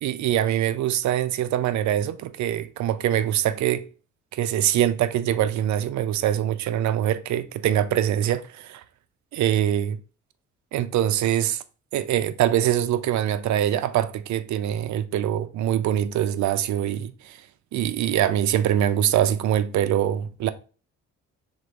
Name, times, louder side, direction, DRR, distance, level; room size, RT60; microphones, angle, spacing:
voice 1, 0.0-3.9 4.3-8.8 9.3-10.0 10.7-11.6 11.9-17.4 17.7-20.5, right 11 dB, 70° right, 0.5 m, -23 dB
5.2 x 3.6 x 2.4 m
cardioid pair, 90°, 30 cm